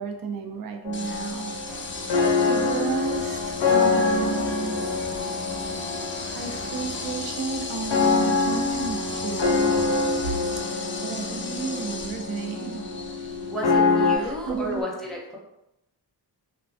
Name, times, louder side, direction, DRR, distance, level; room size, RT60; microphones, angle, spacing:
voice 1, 0.0-1.6 2.0-2.2 2.5-4.8 6.3-9.8 10.2-10.3 10.7-12.8 14.2-14.8, right 5 dB, 55° right, 4 dB, 0.5 m, -32 dB
sound 1, 0.8-14.2, left 4 dB, 85° left, 0.6 m, -25 dB
sound 2, 0.9-14.8, left 4 dB, 30° left, 0.4 m, -38 dB
sound 3, 1.6-10.6, right 1 dB, 85° right, 1.0 m, -43 dB
voice 2, 13.5-15.4, equal, ahead, -4 dB, 0.9 m, -32 dB
3.2 x 2.1 x 2.6 m, 0.87 s
cardioid pair, 65°, 42 cm